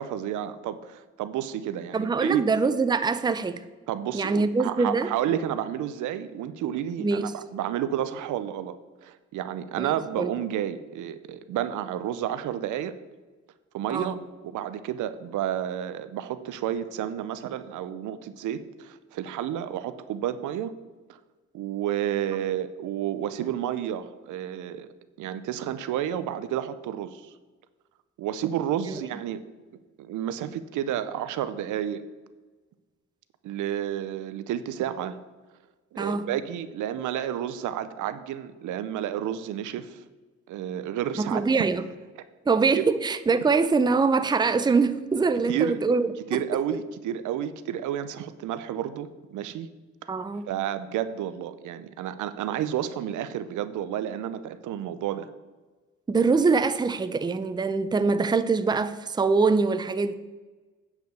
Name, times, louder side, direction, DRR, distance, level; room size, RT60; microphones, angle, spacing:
voice 1, 0.0-2.4 3.9-8.8 9.0-12.9 13.7-20.7 21.1-21.2 21.5-24.9 25.2-27.3 28.2-29.4 30.0-32.0 33.4-35.2 35.9-40.0 40.5-41.7 42.7-42.9 45.5-45.8 46.3-49.7 50.5-55.3, right 10 dB, 85° right, 0.7 m, -31 dB
voice 2, 1.9-3.6 4.1-5.1 7.0-7.3 9.8-9.9 10.2-10.3 13.9-14.1 28.9-29.0 36.0-36.2 41.2-41.8 42.5-46.4 50.1-50.5 56.1-60.1, right 4 dB, 15° right, 0.5 m, -24 dB
9.3 x 5.1 x 6.7 m
cardioid pair, 90°, 30 cm